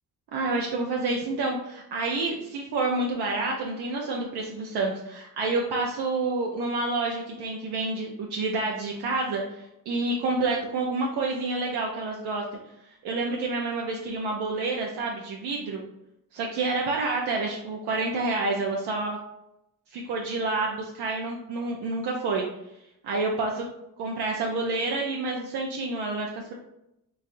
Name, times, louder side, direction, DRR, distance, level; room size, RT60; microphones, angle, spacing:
voice 1, 0.3-12.4 13.0-15.8 16.3-19.2 19.9-22.4 23.0-23.7 24.0-26.5, right 3 dB, 85° right, -1 dB, 0.6 m, -28 dB
4.8 x 2.7 x 2.6 m, 0.83 s
supercardioid pair, 55°, 39 cm